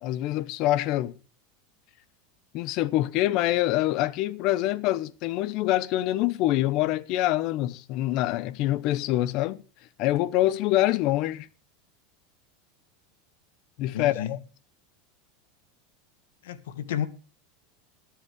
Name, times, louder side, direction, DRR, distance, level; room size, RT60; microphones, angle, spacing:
voice 1, 0.0-1.1 2.5-9.6 10.0-11.5 13.8-14.4, left 15 dB, 50° left, 0.9 m, -25 dB
voice 2, 13.9-14.4 16.4-17.1, left 9 dB, 90° left, 1.5 m, -31 dB
13.0 x 10.5 x 5.1 m
supercardioid pair, 140°, 0 cm